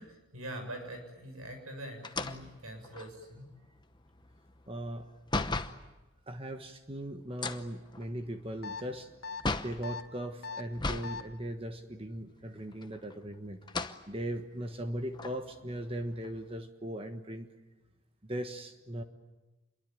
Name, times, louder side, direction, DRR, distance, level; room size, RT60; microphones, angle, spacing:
voice 1, 0.3-3.5, right 1 dB, 80° right, 5 dB, 7.3 m, -43 dB
sound 1, 2.0-5.8 7.3-9.9 10.7-11.2 11.5-11.6 12.7-13.2 13.6-14.0 14.7-14.8 15.1-16.5, left 3 dB, 20° left, 0.9 m, -36 dB
voice 2, 4.7-5.1 6.3-9.1 9.6-13.6 14.1-17.5 18.2-19.0, right 1 dB, 25° right, 7 dB, 1.4 m, -38 dB
sound 2, 8.6-8.8 9.2-9.4 9.8-10.0 10.4-10.6 11.0-11.2, left 5 dB, 80° left, 1.9 m, -39 dB
27.5 x 23.0 x 9.3 m, 1.1 s
head